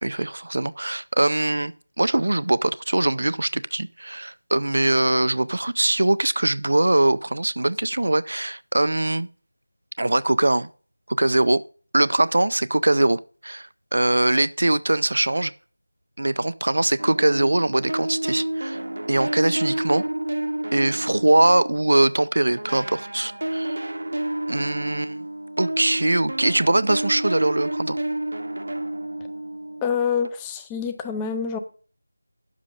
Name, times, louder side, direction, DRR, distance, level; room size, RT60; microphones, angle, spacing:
voice 1, 0.0-9.3 10.0-10.7 11.1-11.6 11.9-15.5 16.2-18.8 19.1-20.0 20.7-23.8 24.5-25.2 25.6-28.0, right 2 dB, 55° right, 0.4 m, -22 dB
sound 1, 17.0-22.2 22.6-30.3, right 1 dB, 75° right, 1.1 m, -30 dB
voice 2, 29.8-31.6, left 7 dB, 5° left, 0.4 m, -26 dB
10.5 x 7.4 x 5.1 m
figure-of-eight pair, 175°, 0 cm